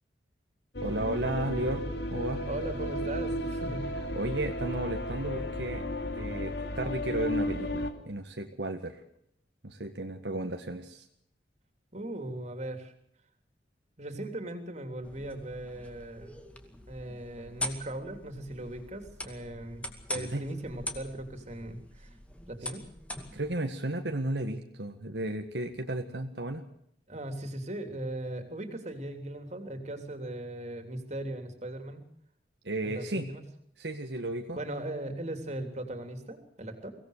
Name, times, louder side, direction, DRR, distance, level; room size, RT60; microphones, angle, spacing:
sound 1, 0.7-7.9, left 1 dB, 70° left, 2.5 m, -33 dB
voice 1, 0.8-2.4 4.1-5.9 6.1-9.0 9.6-11.1 20.1-20.4 23.3-26.6 32.6-33.3 33.8-34.6, right 1 dB, 75° right, 4 dB, 1.8 m, -34 dB
voice 2, 2.5-3.9 11.9-12.9 14.0-16.3 16.9-22.1 22.5-22.8 27.1-32.0 32.8-33.4 34.5-36.9, right 1 dB, 40° right, 7 dB, 3.4 m, -38 dB
sound 2, 15.0-23.5, left 1 dB, 10° left, 2.3 m, -42 dB
24.0 x 17.5 x 6.7 m, 0.72 s
head